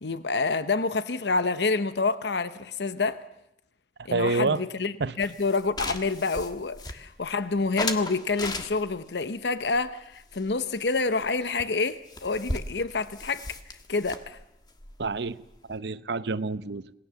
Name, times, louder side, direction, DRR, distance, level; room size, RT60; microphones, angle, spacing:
voice 1, 0.0-3.2 4.0-13.4 13.9-14.4, left 3 dB, 75° left, 0.8 m, -28 dB
voice 2, 4.1-4.6 5.0-5.1 15.0-15.4 15.7-16.8, right 3 dB, 75° right, 0.8 m, -27 dB
sound 1, 5.2-7.3 7.8-9.1 9.6-10.9 11.2-11.3 11.6-11.7 11.9-15.8, left 3 dB, 25° left, 1.5 m, -36 dB
27.0 x 19.5 x 7.0 m
head